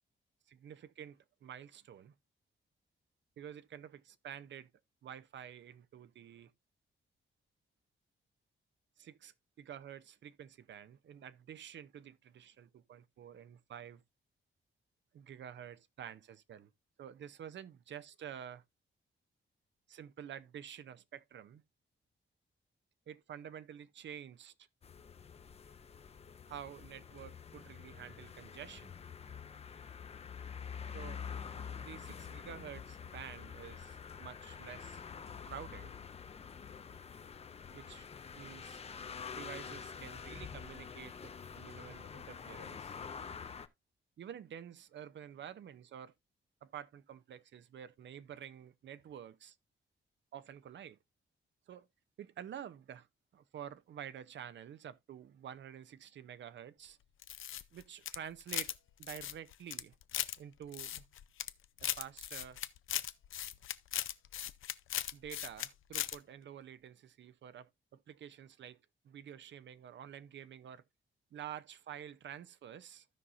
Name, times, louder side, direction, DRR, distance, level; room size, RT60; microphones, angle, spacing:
voice 1, 0.5-2.1 3.4-4.7 5.0-6.5 9.0-14.0 15.1-16.7 17.0-18.6 19.9-21.6 23.1-24.5 26.5-28.9 30.9-31.2 31.8-35.0 35.5-35.9 37.7-38.0 38.3-38.8 39.3-43.0 44.2-46.1 46.6-49.6 50.3-51.0 51.7-51.9 52.2-53.1 53.3-57.0 57.7-59.9 60.4-61.1 61.8-62.6 65.1-68.8 69.0-70.8 71.3-73.1, right 9 dB, 65° right, 0.6 m, -49 dB
sound 1, 24.8-43.7, left 6 dB, 30° left, 0.6 m, -47 dB
sound 2, 57.2-58.8 59.0-60.4 60.7-61.5 61.8-65.7 65.9-66.2, left 11 dB, 80° left, 0.6 m, -38 dB
15.5 x 5.6 x 2.5 m
wide cardioid pair, 170°, 20 cm